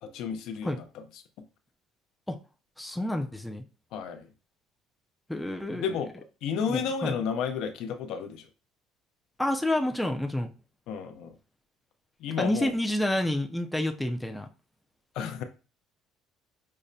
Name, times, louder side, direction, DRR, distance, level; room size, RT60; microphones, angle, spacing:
voice 1, 0.0-1.0 1.4-1.5 3.9-4.3 5.7-8.5 10.9-11.4 12.2-12.7 15.1-15.4, left 6 dB, 70° left, 0.5 m, -32 dB
voice 2, 2.8-3.6 5.3-6.0 6.5-7.2 9.4-10.5 12.4-14.5, left 1 dB, 5° left, 0.4 m, -29 dB
5.3 x 2.1 x 2.5 m
cardioid pair, 135°, 0 cm